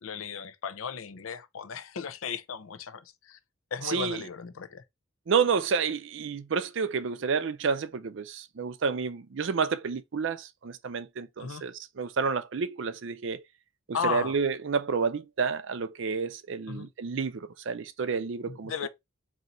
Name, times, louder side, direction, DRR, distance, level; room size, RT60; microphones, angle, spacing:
voice 1, 0.0-3.4 3.7-4.8 11.4-11.6 13.9-14.4 16.7-16.9 18.5-18.9, left 6 dB, 80° left, 0.6 m, -35 dB
voice 2, 3.8-4.2 5.3-13.4 14.0-18.7, right 5 dB, 65° right, 0.4 m, -30 dB
4.2 x 2.7 x 3.7 m
head